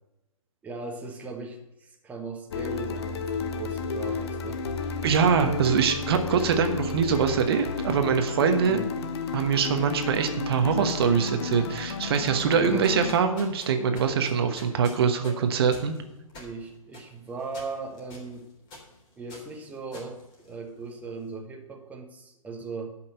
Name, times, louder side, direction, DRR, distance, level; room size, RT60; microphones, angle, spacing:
voice 1, 0.6-4.6 8.6-8.9 12.6-12.9 16.3-18.5 19.2-22.9, right 3 dB, 10° right, 1 dB, 1.2 m, -38 dB
sound 1, 2.5-13.2, left 4 dB, 45° left, 1.0 m, -32 dB
voice 2, 5.0-8.8 9.3-15.9, right 6 dB, 45° right, 7 dB, 1.1 m, -23 dB
sound 2, 12.8-21.0, left 2 dB, 25° left, 3.5 m, -47 dB
12.0 x 5.8 x 6.5 m, 0.95 s
figure-of-eight pair, 120°, 18 cm